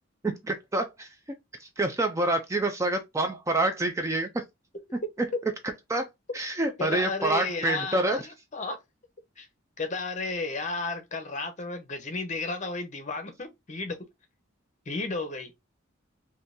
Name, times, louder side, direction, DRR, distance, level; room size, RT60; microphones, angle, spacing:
voice 1, 0.2-1.1 1.6-4.4 5.9-6.1 6.3-8.2, right 2 dB, 15° right, 0.4 m, -27 dB
voice 2, 6.8-8.2 8.5-8.8 9.4-9.5 9.8-14.0 14.9-15.5, left 3 dB, 40° left, 0.8 m, -33 dB
3.7 x 2.7 x 2.5 m
head